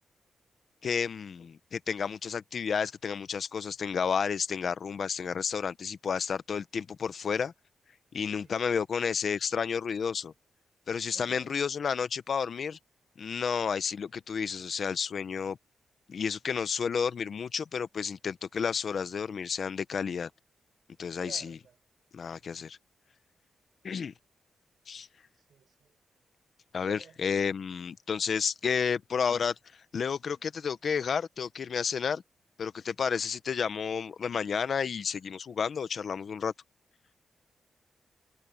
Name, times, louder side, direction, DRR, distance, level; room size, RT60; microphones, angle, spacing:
voice 1, 0.8-7.5 8.1-10.3 10.9-12.8 13.2-15.6 16.1-20.3 21.0-21.6 22.1-22.8 23.8-24.1 24.9-25.1 26.7-29.5 29.9-32.2 32.6-36.5, left 6 dB, 50° left, 0.7 m, -31 dB
voice 2, 11.1-11.6 21.2-21.8 25.5-26.0 26.8-27.4, right 7 dB, 65° right, 5.1 m, -52 dB
wide cardioid pair, 165°, 0 cm